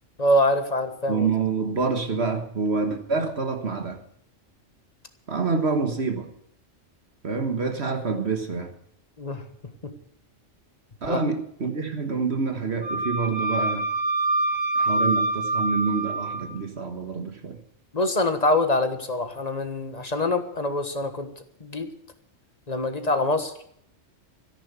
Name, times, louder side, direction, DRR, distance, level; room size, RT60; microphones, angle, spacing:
voice 1, 0.2-1.3 9.2-9.4 9.8-9.9 11.1-11.2 17.9-21.3 21.6-21.9 22.7-23.5, left 1 dB, 35° left, 8 dB, 1.6 m, -24 dB
voice 2, 1.1-4.0 5.3-6.3 7.2-8.7 11.0-13.9 14.8-17.6, right 4 dB, 60° right, 6 dB, 1.7 m, -27 dB
Wind instrument woodwind instrument, 12.8-16.5, right 2 dB, 15° right, 6.3 m, -25 dB
13.5 x 10.5 x 8.2 m, 0.69 s
omnidirectional pair, 1.3 m